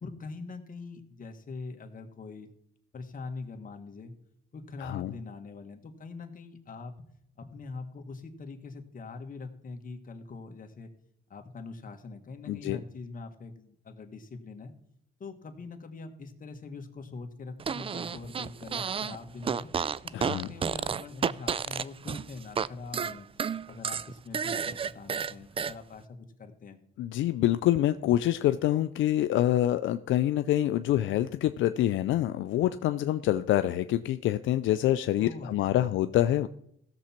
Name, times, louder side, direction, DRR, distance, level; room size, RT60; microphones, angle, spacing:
voice 1, 0.0-2.5 2.9-4.1 4.5-7.0 7.4-10.9 11.3-14.7 15.2-19.7 20.2-23.3 23.7-26.8 35.2-35.9, left 4 dB, 45° left, 5 dB, 1.6 m, -43 dB
voice 2, 4.8-5.1 12.5-12.8 20.1-20.5 27.0-36.5, left 13 dB, 75° left, 11 dB, 0.4 m, -26 dB
Fart, 17.6-19.2 19.4-22.7 22.9-25.7, right 7 dB, 30° right, 0.3 m, -31 dB
15.5 x 7.0 x 4.4 m, 0.72 s
cardioid pair, 90°, 20 cm